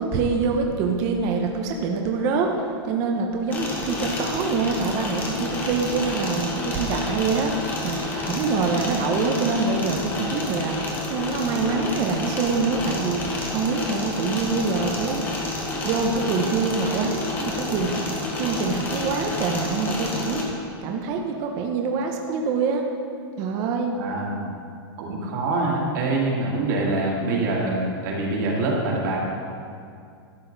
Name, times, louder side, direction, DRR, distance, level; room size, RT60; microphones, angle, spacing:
voice 1, 0.0-15.2 15.8-18.0 18.4-22.8 23.4-23.9, right 4 dB, 25° right, 2 dB, 0.7 m, -25 dB
sound 1, 3.5-20.4, left 2 dB, 15° left, 1.2 m, -29 dB
voice 2, 23.9-24.5 25.0-29.2, right 2 dB, 50° right, -3 dB, 2.2 m, -25 dB
12.5 x 8.9 x 3.9 m, 2.3 s
supercardioid pair, 175°, 13 cm